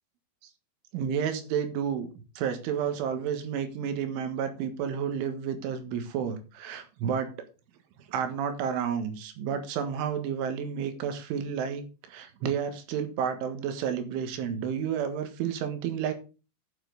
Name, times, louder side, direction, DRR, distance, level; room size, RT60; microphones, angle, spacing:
voice 1, 0.9-2.1 2.4-7.3 8.1-16.1, right 8 dB, 80° right, 3.9 m, -31 dB
12.0 x 7.3 x 3.9 m
omnidirectional pair, 5.7 m